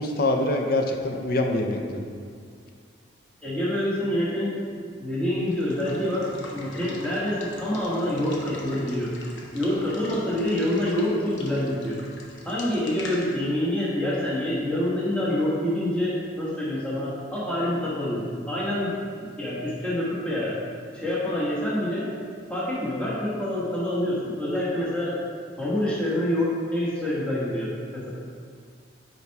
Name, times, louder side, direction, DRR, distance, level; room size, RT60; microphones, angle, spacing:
voice 1, 0.0-2.0, left 2 dB, 55° left, 3 dB, 0.6 m, -25 dB
voice 2, 3.4-4.6 5.0-6.2 6.5-9.1 9.5-12.0 12.4-18.9 19.2-20.5 20.9-22.1 22.5-25.1 25.6-28.1, left 1 dB, 5° left, -8 dB, 1.2 m, -26 dB
Water / Water tap faucet / Liquid, 5.4-15.0, left 1 dB, 80° left, 0.9 m, -42 dB
5.7 x 4.5 x 4.6 m, 2.1 s
head